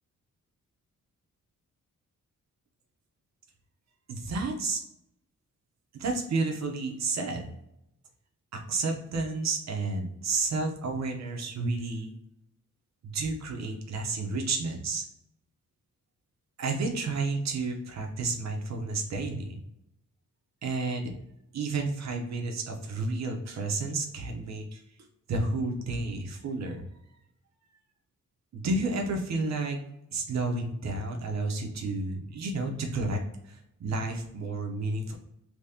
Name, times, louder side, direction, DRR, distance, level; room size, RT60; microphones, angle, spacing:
voice 1, 4.1-4.8 5.9-7.4 8.5-12.1 13.0-15.0 16.6-19.6 20.6-21.1 21.5-24.8 25.3-26.8 28.5-29.8 30.1-35.1, right 3 dB, 55° right, 2 dB, 0.9 m, -31 dB
3.5 x 3.0 x 2.8 m, 0.82 s
wide cardioid pair, 170°, 32 cm